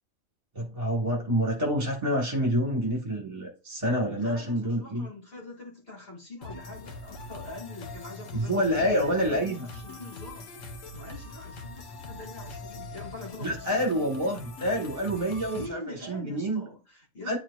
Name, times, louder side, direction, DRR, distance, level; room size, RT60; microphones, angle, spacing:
voice 1, 0.5-5.1 8.3-9.6 13.4-16.6 17.3-17.4, equal, 30° right, 1 dB, 1.6 m, -27 dB
voice 2, 4.0-10.5 10.9-13.9 15.5-17.4, left 2 dB, 50° left, -3 dB, 2.4 m, -43 dB
sound 1, 6.4-15.7, left 2 dB, 90° left, 1.4 m, -42 dB
9.5 x 4.5 x 2.4 m, 0.32 s
omnidirectional pair, 1.3 m